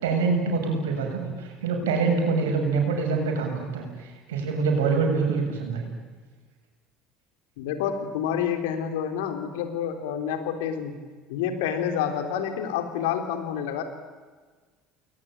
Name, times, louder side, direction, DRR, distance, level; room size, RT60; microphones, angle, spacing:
voice 1, 0.0-5.9, right 4 dB, 80° right, 2 dB, 7.1 m, -25 dB
voice 2, 7.6-10.9 11.3-13.8, left 8 dB, 75° left, 6 dB, 3.5 m, -28 dB
30.0 x 21.0 x 8.9 m, 1.4 s
hypercardioid pair, 70°, 0 cm